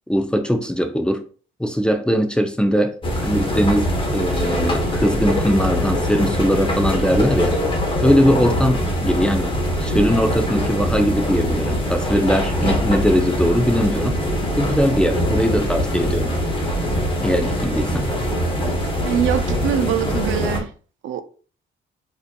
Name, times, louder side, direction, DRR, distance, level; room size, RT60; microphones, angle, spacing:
voice 1, 0.1-1.2 1.6-3.0 3.2-7.6 8.0-14.2 14.6-16.4 17.2-18.1, equal, 5° left, 0.4 m, -20 dB
sound 1, 3.0-20.6, equal, 25° left, 1.0 m, -22 dB
voice 2, 19.0-20.7 21.0-21.2, right 10 dB, 75° right, 0.4 m, -23 dB
4.2 x 2.7 x 2.2 m
cardioid pair, 90°, 20 cm